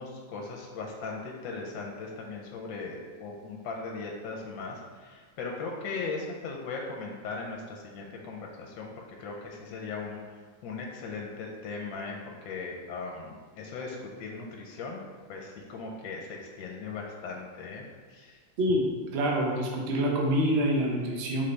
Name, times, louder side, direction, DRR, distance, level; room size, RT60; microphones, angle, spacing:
voice 1, 0.0-10.2 10.6-15.0 15.3-17.8 18.1-18.4, left 4 dB, 80° left, -1 dB, 1.3 m, -38 dB
voice 2, 19.1-21.4, equal, 80° right, -2 dB, 0.5 m, -26 dB
3.9 x 3.6 x 3.2 m, 1.5 s
omnidirectional pair, 2.1 m